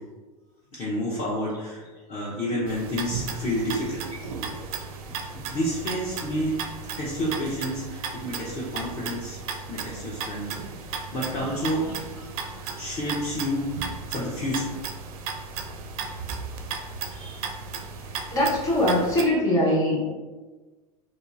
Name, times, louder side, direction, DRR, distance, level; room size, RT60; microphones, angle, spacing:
voice 1, 0.7-4.1 4.7-4.9 5.3-6.6 7.0-9.4 9.7-10.5 10.8-11.9 12.7-14.7 17.1-17.5, equal, 35° left, -6 dB, 0.6 m, -30 dB
sound 1, 2.7-19.3, right 5 dB, 65° right, 0.4 m, -35 dB
voice 2, 18.3-20.1, left 1 dB, 15° left, -5 dB, 1.1 m, -22 dB
2.8 x 2.3 x 2.5 m, 1.3 s
hypercardioid pair, 95°, 20 cm